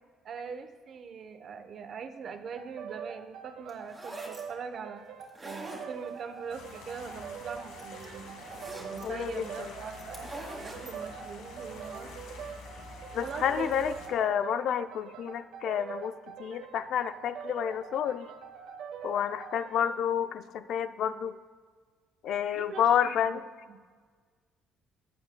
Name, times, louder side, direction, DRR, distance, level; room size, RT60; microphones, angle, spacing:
voice 1, 0.2-5.0 5.4-8.4 8.7-10.3 10.6-12.5 13.2-13.7 22.6-23.4 23.7-23.8, right 6 dB, 45° right, 9 dB, 0.7 m, -42 dB
sound 1, 2.6-20.0, right 7 dB, 80° right, 1.0 m, -44 dB
sound 2, 3.7-4.4 5.2-6.2 7.4-7.5 7.8-9.0 10.0-11.0, right 2 dB, 15° right, 2.0 m, -43 dB
sound 3, 6.5-14.1, left 4 dB, 85° left, 1.6 m, -48 dB
voice 2, 9.0-9.7 13.1-18.3 19.0-21.4 22.2-23.4, left 9 dB, 60° left, 12 dB, 0.4 m, -30 dB
15.0 x 9.5 x 2.2 m, 1.5 s
cardioid pair, 140°, 0 cm